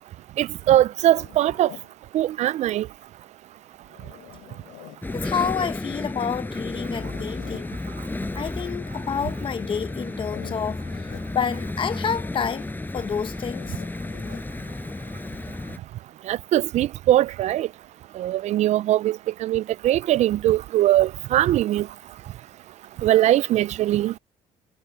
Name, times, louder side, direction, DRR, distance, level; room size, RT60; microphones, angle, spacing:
voice 1, 0.4-1.7 2.1-2.9 16.2-17.7 18.1-21.9 23.0-24.1, right 13 dB, 55° right, 0.4 m, -21 dB
Zipper (clothing), 1.1-1.9 3.9-5.1 6.6-7.7 10.1-11.3 13.4-14.5, left 17 dB, 90° left, 4.2 m, -45 dB
sound 1, 5.0-15.8, left 2 dB, 15° left, 7.3 m, -32 dB
voice 2, 5.1-7.8 8.3-12.7 12.9-13.8, left 7 dB, 40° left, 1.2 m, -29 dB
cardioid pair, 110°, 14 cm